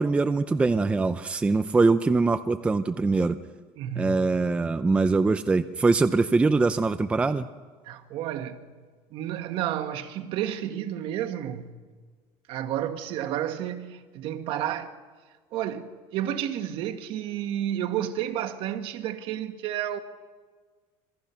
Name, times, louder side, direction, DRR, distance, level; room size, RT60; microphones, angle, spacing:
voice 1, 0.0-3.4 4.0-7.5, right 3 dB, 10° right, 0.6 m, -23 dB
voice 2, 3.8-4.3 7.8-8.7 9.1-11.8 12.5-14.9 15.5-20.0, right 11 dB, 50° right, 1.6 m, -31 dB
27.5 x 23.0 x 5.8 m
cardioid pair, 165°, 11 cm